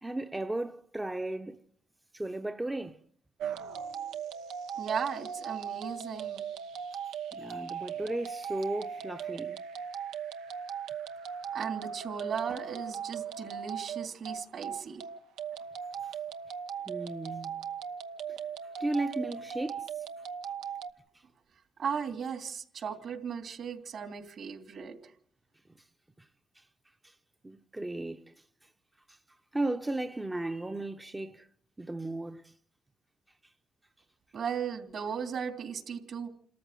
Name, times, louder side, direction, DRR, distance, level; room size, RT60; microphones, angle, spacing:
voice 1, 0.0-1.6 2.1-3.0 7.3-9.6 16.0-16.2 16.9-17.6 18.8-20.0 26.6-26.7 27.0-27.1 27.4-28.3 29.1-29.2 29.5-31.5 31.8-32.5, right 2 dB, 15° right, 0.8 m, -35 dB
sound 1, 3.4-20.9, right 7 dB, 90° right, 1.0 m, -38 dB
voice 2, 4.7-6.4 11.5-15.0 21.8-25.0 34.3-36.3, right 7 dB, 60° right, 3.0 m, -36 dB
27.5 x 14.0 x 7.6 m
cardioid pair, 90°, 0 cm